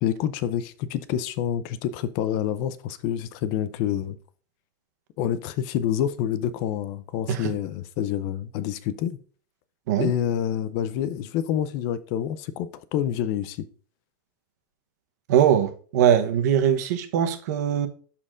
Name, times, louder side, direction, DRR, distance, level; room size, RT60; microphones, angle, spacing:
voice 1, 0.0-4.2 5.2-9.2 10.0-13.6, left 10 dB, 40° left, 0.5 m, -27 dB
voice 2, 15.3-17.9, right 9 dB, 60° right, 0.9 m, -21 dB
12.0 x 4.2 x 2.5 m
supercardioid pair, 155°, 10 cm